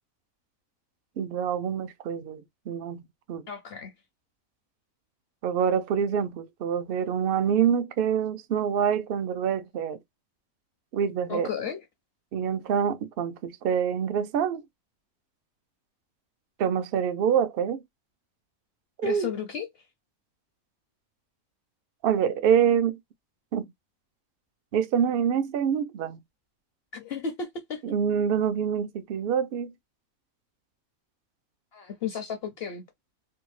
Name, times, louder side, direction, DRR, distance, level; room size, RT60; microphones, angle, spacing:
voice 1, 1.2-3.0 3.3-3.4 5.4-10.0 10.9-11.5 12.3-14.6 16.6-17.8 19.0-19.3 22.0-23.0 23.5-23.6 24.7-26.2 27.8-29.7, right 8 dB, 65° right, 0.5 m, -26 dB
voice 2, 3.5-3.9 11.3-11.8 19.0-19.7 26.9-27.8 31.7-32.8, left 7 dB, 60° left, 0.7 m, -33 dB
2.7 x 2.3 x 3.1 m
omnidirectional pair, 1.5 m